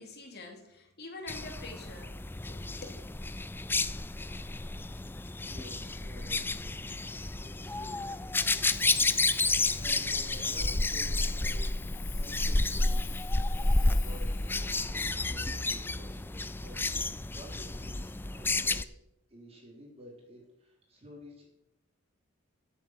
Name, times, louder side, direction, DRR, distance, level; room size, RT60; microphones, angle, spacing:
voice 1, 0.0-2.1 2.5-3.0, left 2 dB, 50° left, 2 dB, 2.8 m, -46 dB
sound 1, 1.3-18.8, left 2 dB, 10° left, 0.4 m, -31 dB
voice 2, 4.8-6.6 7.3-8.1 8.4-9.4 9.7-13.1 13.5-18.9 19.3-21.4, equal, 30° right, -3 dB, 3.9 m, -52 dB
Hiss, 8.6-14.9, left 11 dB, 70° left, 1.9 m, -50 dB
15.0 x 8.2 x 6.0 m, 0.82 s
head